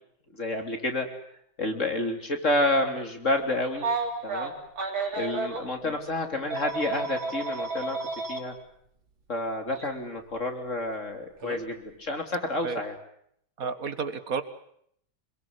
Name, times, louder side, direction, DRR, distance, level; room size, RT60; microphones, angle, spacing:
voice 1, 0.3-1.1 1.6-3.9 4.2-4.5 5.2-8.0 8.3-8.6 9.3-12.9, left 2 dB, 35° left, 5 dB, 3.7 m, -29 dB
Telephone, 3.7-5.6 6.5-8.4 9.7-9.9 11.4-11.6, right 3 dB, 70° right, 4.4 m, -31 dB
voice 2, 13.6-14.4, right 5 dB, 45° right, 11 dB, 1.9 m, -31 dB
28.0 x 22.0 x 8.1 m, 0.69 s
omnidirectional pair, 2.2 m